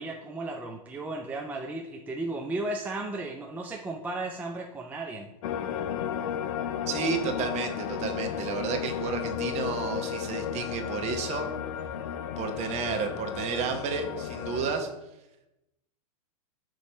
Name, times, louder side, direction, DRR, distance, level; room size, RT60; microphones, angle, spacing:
voice 1, 0.0-5.3, right 2 dB, 10° right, 1 dB, 0.5 m, -35 dB
sound 1, 5.4-14.7, left 8 dB, 60° left, 0.5 m, -33 dB
voice 2, 6.9-11.5 12.4-14.9, right 5 dB, 35° right, 5 dB, 1.0 m, -31 dB
6.9 x 3.1 x 5.3 m, 0.91 s
hypercardioid pair, 110°, 19 cm